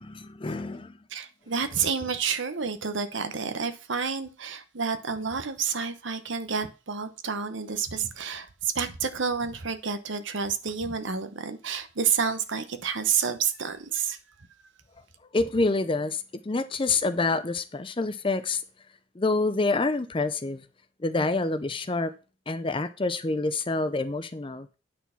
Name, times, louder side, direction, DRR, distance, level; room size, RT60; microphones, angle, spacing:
voice 1, 0.0-0.9 15.3-18.6 19.2-20.6 21.0-22.1 22.5-24.7, left 3 dB, 25° left, 0.5 m, -27 dB
voice 2, 1.1-14.2, right 6 dB, 65° right, 0.9 m, -29 dB
9.3 x 4.3 x 5.7 m
head